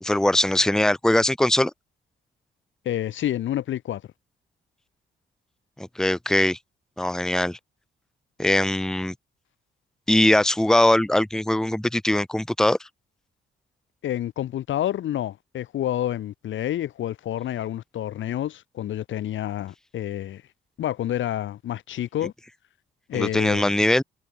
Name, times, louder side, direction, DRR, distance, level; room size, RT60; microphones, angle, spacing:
voice 1, 0.0-1.7 5.8-6.6 7.0-7.6 8.4-9.1 10.1-12.8 23.1-24.0, left 1 dB, 5° left, 1.0 m, -21 dB
voice 2, 2.8-4.0 14.0-20.4 20.8-22.3 23.1-23.7, left 12 dB, 75° left, 4.2 m, -28 dB
cardioid pair, 90°, 20 cm